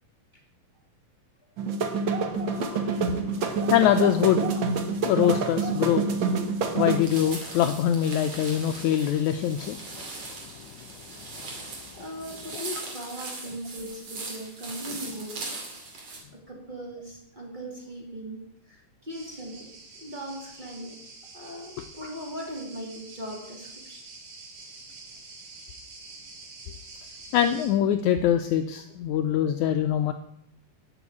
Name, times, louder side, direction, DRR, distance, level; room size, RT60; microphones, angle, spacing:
sound 1, 1.6-7.0, right 4 dB, 65° right, 1.2 m, -27 dB
voice 1, 2.4-4.6 5.0-6.1 6.7-9.8 27.3-30.1, left 10 dB, 80° left, 8 dB, 1.8 m, -24 dB
sound 2, 6.9-16.2, right 3 dB, 50° right, 3.2 m, -39 dB
voice 2, 11.9-15.5 16.3-21.0 21.3-24.0, equal, 20° right, 0 dB, 1.6 m, -39 dB
sound 3, 19.1-27.7, right 3 dB, 90° right, 4.2 m, -47 dB
11.0 x 7.0 x 8.4 m, 0.75 s
omnidirectional pair, 3.8 m